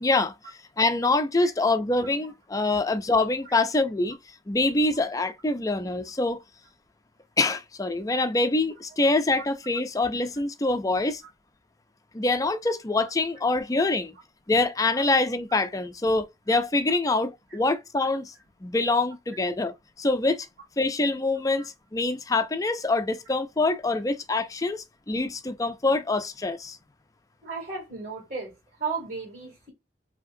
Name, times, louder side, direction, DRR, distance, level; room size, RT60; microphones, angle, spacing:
voice 1, 0.0-0.3 0.8-4.2 4.5-6.4 7.4-11.2 12.1-14.1 14.5-18.3 18.6-20.5 20.8-26.8, left 2 dB, 20° left, 0.4 m, -25 dB
voice 2, 27.4-28.5 28.8-29.7, right 4 dB, 45° right, 2.3 m, -34 dB
5.1 x 2.8 x 2.6 m
head